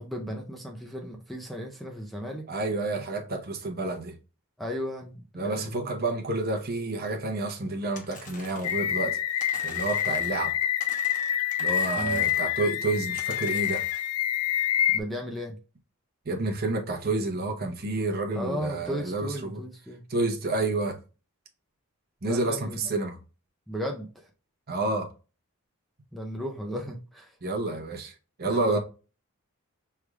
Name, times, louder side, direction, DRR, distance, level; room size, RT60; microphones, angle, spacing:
voice 1, 0.0-2.5 4.6-5.7 12.0-12.3 14.9-15.6 18.4-20.0 22.2-22.8 23.7-24.3 26.1-27.3 28.4-28.8, equal, ahead, 0.5 m, -35 dB
voice 2, 2.5-4.2 5.3-10.5 11.6-13.8 16.3-19.6 20.1-21.0 22.2-23.2 24.7-25.1 27.4-28.8, right 2 dB, 45° right, 0.8 m, -29 dB
sound 1, 7.9-8.9 9.4-10.5 10.8-12.5 13.2-14.1, left 3 dB, 35° left, 1.0 m, -45 dB
sound 2, 8.6-15.0, left 10 dB, 85° left, 0.4 m, -27 dB
6.1 x 3.4 x 2.3 m
head